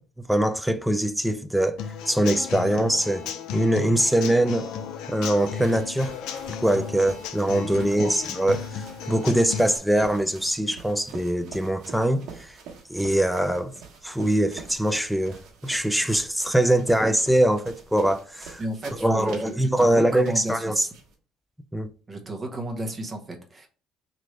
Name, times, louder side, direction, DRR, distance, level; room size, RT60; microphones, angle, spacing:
voice 1, 0.3-3.2 3.5-4.7 5.1-6.1 6.6-12.5 12.9-13.7 14.0-15.4 15.6-18.6 19.0-20.9 21.7-21.9, right 1 dB, ahead, 0.3 m, -23 dB
Human voice / Acoustic guitar / Drum, 1.8-9.8, left 7 dB, 75° left, 0.4 m, -35 dB
sound 1, 5.1-21.1, right 5 dB, 65° right, 1.1 m, -46 dB
voice 2, 7.7-8.1 18.6-20.9 22.1-23.7, right 1 dB, 25° right, 0.8 m, -33 dB
3.1 x 2.5 x 4.4 m
cardioid pair, 120°, 0 cm